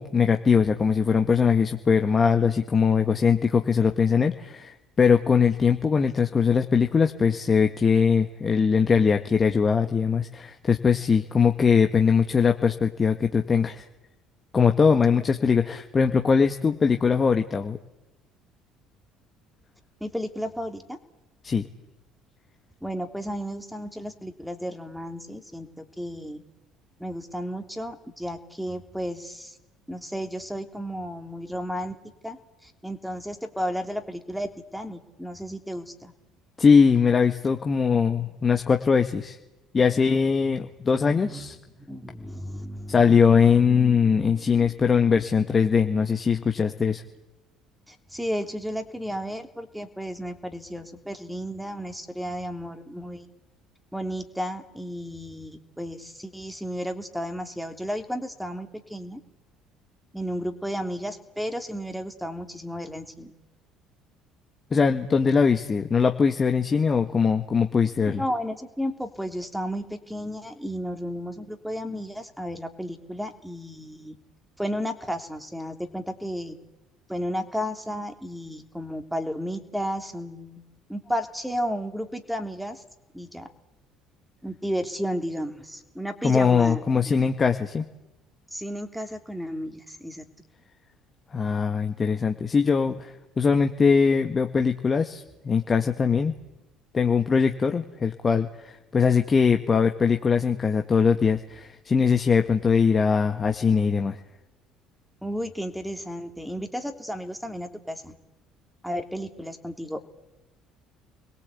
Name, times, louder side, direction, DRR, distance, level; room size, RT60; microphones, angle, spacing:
voice 1, 0.0-13.8 14.5-17.8 21.4-21.7 36.6-39.4 39.7-41.6 42.9-47.0 64.7-68.2 86.2-87.8 91.3-96.3 96.9-104.2, left 6 dB, 30° left, 5 dB, 1.7 m, -21 dB
voice 2, 20.0-21.0 22.8-26.4 27.0-29.6 29.9-32.0 32.2-36.1 41.2-43.0 47.9-53.3 53.9-59.2 60.1-63.3 68.2-74.1 74.6-76.6 77.1-80.6 80.9-82.8 83.1-83.5 84.4-86.8 87.1-87.3 88.5-90.2 105.2-108.1 108.8-110.0, equal, ahead, 6 dB, 3.2 m, -33 dB
30.0 x 21.5 x 8.5 m, 0.98 s
figure-of-eight pair, 55°, 0 cm